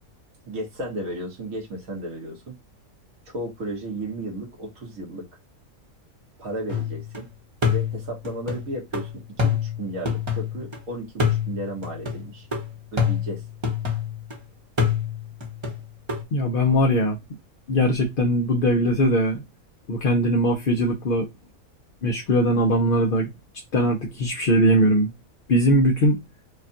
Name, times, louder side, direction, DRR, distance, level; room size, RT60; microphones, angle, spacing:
voice 1, 0.4-2.5 3.3-5.3 6.4-7.3 7.7-12.5 12.9-13.4, right 1 dB, 75° right, 1.9 m, -34 dB
sound 1, 6.7-7.2 7.6-10.8 11.2-14.4 14.8-16.2, left 6 dB, 20° right, 0.9 m, -26 dB
voice 2, 16.3-17.2 17.7-19.4 19.9-21.3 22.0-23.3 23.7-25.1 25.5-26.2, equal, 50° left, 0.8 m, -20 dB
5.1 x 2.4 x 2.7 m
omnidirectional pair, 1.5 m